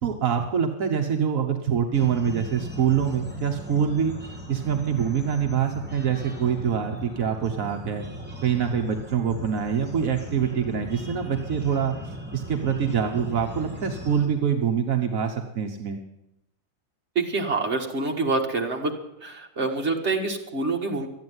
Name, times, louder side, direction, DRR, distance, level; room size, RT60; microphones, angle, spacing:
voice 1, 0.0-4.1 4.5-8.1 8.4-12.0 12.3-16.0, right 7 dB, 80° right, 4 dB, 1.5 m, -25 dB
sound 1, 1.9-14.3, equal, 5° right, 2.4 m, -38 dB
voice 2, 17.2-18.9 19.2-21.1, right 3 dB, 55° right, 2 dB, 2.0 m, -26 dB
13.0 x 9.5 x 9.6 m, 0.84 s
omnidirectional pair, 1.4 m